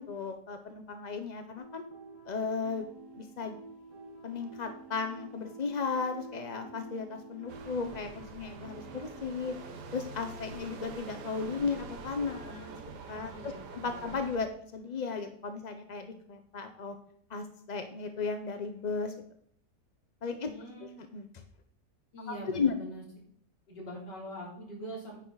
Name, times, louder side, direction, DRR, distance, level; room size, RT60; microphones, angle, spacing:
voice 1, 0.0-1.8 2.3-2.8 3.2-3.6 4.2-9.6 9.9-12.7 13.1-14.5 14.7-17.0 17.3-19.1 20.2-20.5 20.8-21.3 22.5-22.7, left 5 dB, 55° left, 7 dB, 0.4 m, -35 dB
sound 1, 1.6-12.9, right 3 dB, 45° right, 2.0 m, -50 dB
sound 2, 7.5-14.4, right 5 dB, 65° right, 1.6 m, -46 dB
voice 2, 12.5-12.8 13.2-14.1 20.5-21.0 22.1-23.0 23.7-25.2, equal, 75° left, -2 dB, 4.0 m, -43 dB
10.0 x 9.0 x 4.0 m, 0.65 s
omnidirectional pair, 1.9 m